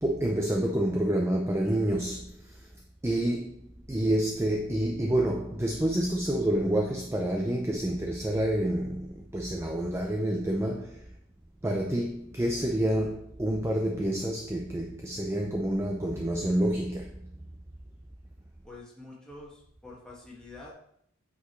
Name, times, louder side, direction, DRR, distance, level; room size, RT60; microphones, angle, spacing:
voice 1, 0.0-2.5 3.0-11.0 11.6-17.2, right 1 dB, 10° right, 0.5 m, -28 dB
voice 2, 18.6-20.7, left 2 dB, 5° left, 1.7 m, -47 dB
8.5 x 5.0 x 3.1 m
head